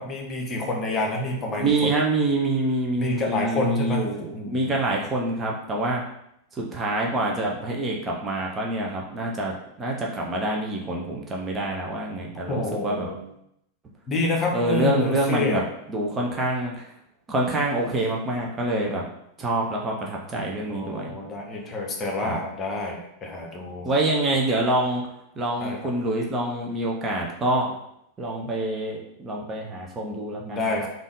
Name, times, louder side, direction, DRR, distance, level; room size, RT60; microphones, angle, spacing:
voice 1, 0.0-1.9 3.0-4.8 12.5-13.2 14.1-15.6 20.7-23.9 25.6-25.8 30.4-30.9, left 2 dB, 25° left, 0 dB, 0.8 m, -28 dB
voice 2, 1.6-6.0 6.5-13.1 14.5-15.6 15.9-16.9 17.3-19.0 19.4-21.2 22.2-22.4 23.8-25.0 25.4-27.7 28.2-30.9, right 2 dB, 20° right, -1 dB, 0.6 m, -26 dB
3.5 x 2.4 x 3.6 m, 0.77 s
figure-of-eight pair, 90°, 0 cm